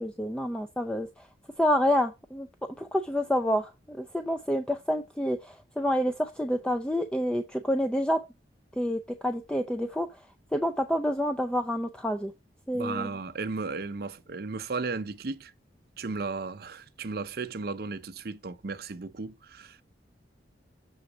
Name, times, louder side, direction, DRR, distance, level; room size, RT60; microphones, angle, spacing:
voice 1, 0.0-1.3 1.6-2.5 2.8-8.2 8.8-10.1 10.5-12.3 12.7-13.1, equal, 5° left, 0.4 m, -28 dB
voice 2, 12.7-15.5 16.0-19.8, right 4 dB, 55° right, 0.6 m, -35 dB
7.1 x 3.9 x 5.0 m
head